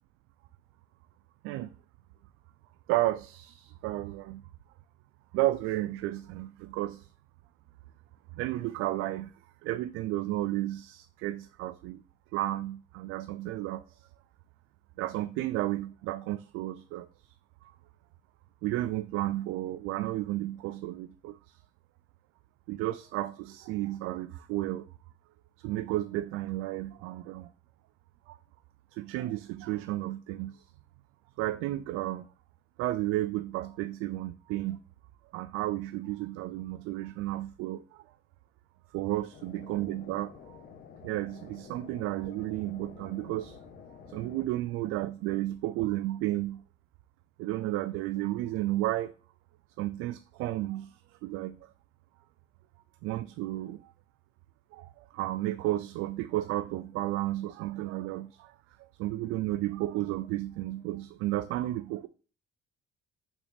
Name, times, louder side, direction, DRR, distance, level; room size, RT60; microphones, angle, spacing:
voice 1, 2.9-4.4 5.3-7.1 8.3-9.3 9.6-12.0 12.3-14.1 15.0-17.3 17.6-17.7 18.6-21.6 22.7-24.9 25.6-27.5 28.3-28.4 28.9-30.6 31.4-32.3 32.8-34.8 35.3-38.0 38.9-40.6 41.0-43.6 44.1-46.6 47.4-49.1 49.8-51.6 53.0-53.9 54.7-58.5 59.0-62.1, right 16 dB, 85° right, 0.4 m, -33 dB
sound 1, 39.3-44.5, left 6 dB, 45° left, 1.2 m, -50 dB
6.5 x 5.8 x 3.5 m
cardioid pair, 160°, 21 cm